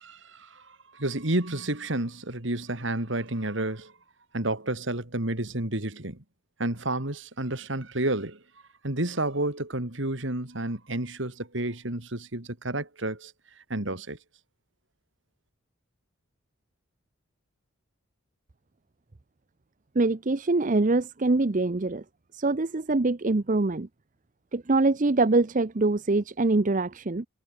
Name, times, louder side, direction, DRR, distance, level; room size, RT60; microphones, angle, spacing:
voice 1, 0.0-3.9 4.3-6.2 6.6-8.4 8.8-13.3 13.7-14.2, right 1 dB, 60° right, 2.9 m, -30 dB
voice 2, 19.9-22.0 22.3-23.9 24.5-27.3, right 2 dB, 40° right, 0.7 m, -24 dB
head